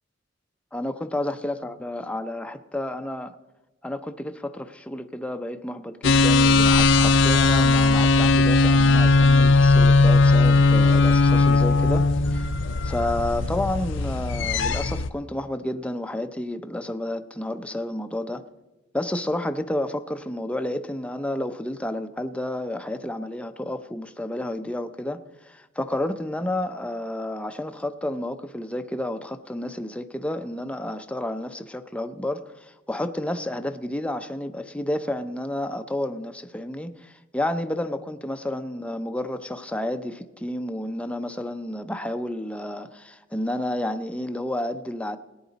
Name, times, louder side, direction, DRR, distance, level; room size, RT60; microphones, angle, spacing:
voice 1, 0.7-3.4 3.8-12.1 12.3-12.5 12.8-18.4 18.9-45.2, left 1 dB, 5° left, 0.6 m, -30 dB
sound 1, 6.0-15.1, left 3 dB, 65° left, 0.5 m, -18 dB
18.5 x 9.5 x 4.0 m
head